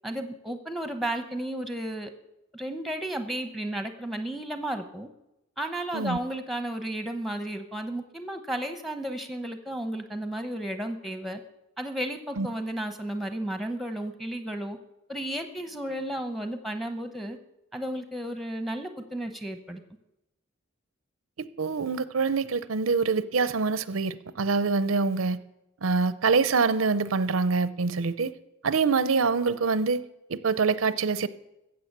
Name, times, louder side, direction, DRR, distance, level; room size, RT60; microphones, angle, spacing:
voice 1, 0.0-2.1 2.5-5.1 5.6-11.4 11.8-14.8 15.1-17.4 17.7-19.8, right 1 dB, ahead, 0.9 m, -33 dB
voice 2, 21.4-25.4 25.8-28.3 28.6-30.0 30.3-31.3, right 4 dB, 90° right, 0.6 m, -25 dB
15.5 x 7.8 x 6.7 m
head